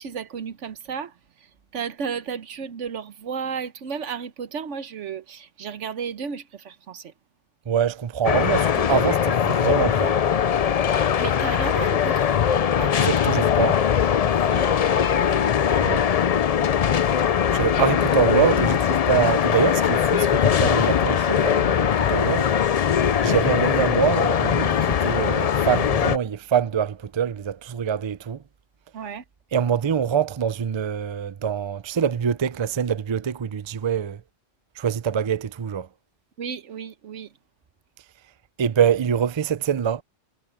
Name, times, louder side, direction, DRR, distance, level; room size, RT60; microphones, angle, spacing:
voice 1, 0.0-7.1 10.9-13.1 14.5-15.5 28.9-29.2 36.4-37.3, right 6 dB, 85° right, 1.3 m, -34 dB
voice 2, 7.7-10.2 13.0-13.8 15.8-16.0 17.5-22.5 23.2-28.4 29.5-34.2 34.8-35.9 38.6-40.0, right 8 dB, 35° right, 0.4 m, -24 dB
sound 1, 8.2-26.2, left 8 dB, 55° left, 0.4 m, -21 dB
omnidirectional pair, 1.2 m